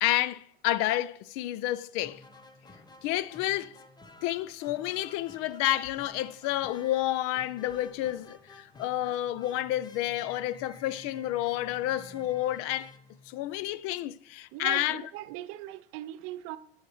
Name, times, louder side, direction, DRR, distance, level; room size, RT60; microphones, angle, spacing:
voice 1, 0.0-2.2 3.0-3.8 4.2-12.9 13.3-15.0, left 14 dB, 50° left, 0.5 m, -30 dB
sound 1, 2.0-13.8, left 3 dB, 15° left, 0.9 m, -52 dB
voice 2, 11.7-12.3 14.5-16.6, right 14 dB, 50° right, 0.9 m, -40 dB
21.0 x 7.2 x 3.0 m
hypercardioid pair, 90°, 30 cm